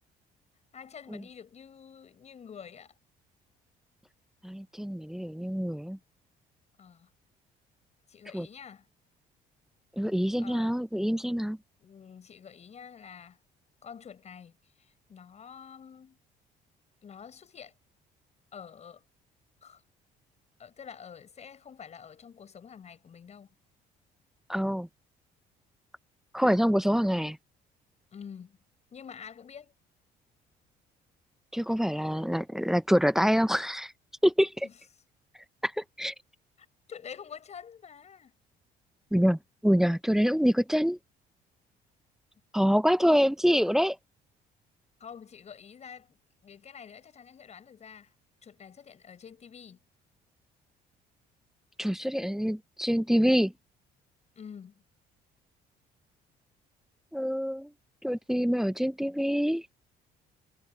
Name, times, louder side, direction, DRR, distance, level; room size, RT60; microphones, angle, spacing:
voice 1, 0.7-2.9 6.8-7.1 8.1-8.9 10.4-10.7 11.8-13.4 13.8-16.2 17.0-17.7 18.5-19.0 19.6-19.8 20.6-23.5 28.1-28.6 28.9-29.7 34.6-34.8 36.6-38.3 43.0-43.3 45.0-48.2 48.4-49.8 54.4-54.8, left 7 dB, 40° left, 7.3 m, -47 dB
voice 2, 4.4-6.0 8.3-8.5 10.0-11.6 24.5-24.9 26.3-27.4 31.5-33.9 34.2-34.7 35.6-36.1 39.1-41.0 42.5-44.0 51.8-53.5 57.1-57.7 58.0-59.6, equal, ahead, 0.5 m, -26 dB
cardioid pair, 110°, 17 cm